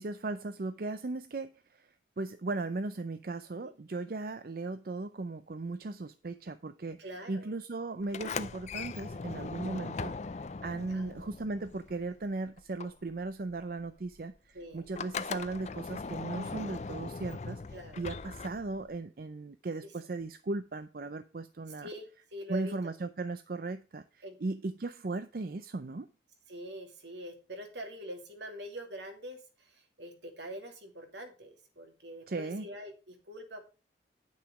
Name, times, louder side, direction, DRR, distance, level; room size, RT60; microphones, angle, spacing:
voice 1, 0.0-10.1 10.6-21.9 22.5-26.1 32.3-32.7, right 3 dB, 55° right, 0.5 m, -37 dB
voice 2, 7.0-7.5 9.1-9.3 10.9-11.1 14.5-14.9 17.7-18.1 19.8-19.9 21.8-22.9 24.2-24.4 26.5-33.7, equal, 75° right, 2.6 m, -44 dB
Sliding door, 8.0-12.3 12.6-19.0, left 4 dB, 40° left, 0.4 m, -40 dB
10.0 x 6.3 x 4.8 m
head